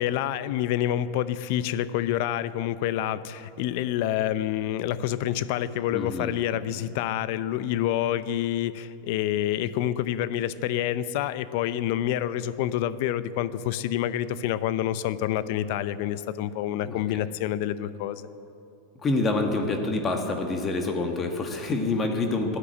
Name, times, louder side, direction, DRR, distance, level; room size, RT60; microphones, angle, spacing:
voice 1, 0.0-18.2, left 12 dB, 60° left, 15 dB, 0.6 m, -27 dB
voice 2, 5.9-6.3 16.8-17.2 19.0-22.6, left 3 dB, 25° left, 4 dB, 1.6 m, -27 dB
13.5 x 9.9 x 8.4 m, 2.6 s
hypercardioid pair, 120°, 0 cm